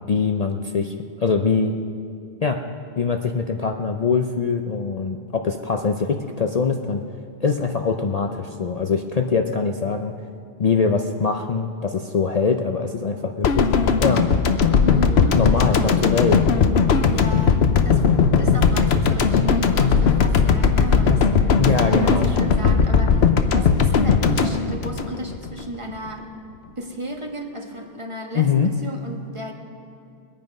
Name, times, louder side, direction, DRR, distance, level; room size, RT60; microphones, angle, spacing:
voice 1, 0.1-1.8 2.4-2.6 3.0-7.0 7.4-10.1 10.6-13.7 14.0-14.2 15.3-16.4 21.6-22.2 28.3-28.7, left 5 dB, 45° left, 4 dB, 0.6 m, -23 dB
sound 1, 13.4-25.6 25.9-26.1, left 5 dB, 75° left, 1.1 m, -18 dB
voice 2, 14.8-15.7 17.1-17.6 17.8-18.0 18.3-21.6 21.9-26.3 26.7-29.5, equal, 30° right, 2 dB, 1.3 m, -33 dB
22.5 x 9.0 x 5.3 m, 2.4 s
omnidirectional pair, 1.1 m